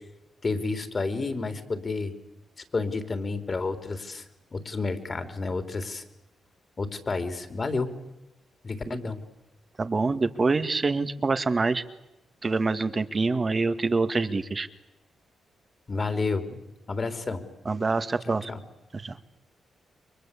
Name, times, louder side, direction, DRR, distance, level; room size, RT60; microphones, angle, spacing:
voice 1, 0.4-2.1 2.7-4.2 4.5-6.0 6.8-7.9 8.6-9.2 15.9-16.6 16.9-17.4 18.3-18.6, left 3 dB, 40° left, 8 dB, 3.7 m, -30 dB
voice 2, 9.8-11.8 12.4-14.7 17.7-18.5 18.9-19.2, right 3 dB, 40° right, 10 dB, 2.0 m, -26 dB
29.5 x 23.5 x 8.5 m, 0.94 s
cardioid pair, 60°, 0 cm